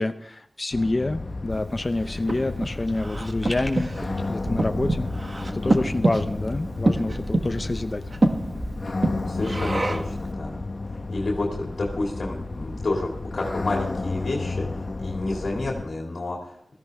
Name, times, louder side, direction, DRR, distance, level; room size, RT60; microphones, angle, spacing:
voice 1, 0.0-8.0, left 2 dB, 40° left, 8 dB, 0.7 m, -28 dB
sound 1, 0.7-15.8, left 3 dB, 60° left, 1.4 m, -32 dB
Breathing, 1.7-10.2, right 2 dB, 50° right, 1.4 m, -27 dB
sound 2, 2.3-4.2, equal, ahead, 3.1 m, -40 dB
voice 2, 9.2-10.6 11.1-16.6, left 2 dB, 75° left, -1 dB, 2.4 m, -30 dB
17.0 x 14.5 x 3.5 m, 0.69 s
wide cardioid pair, 55°, 0 cm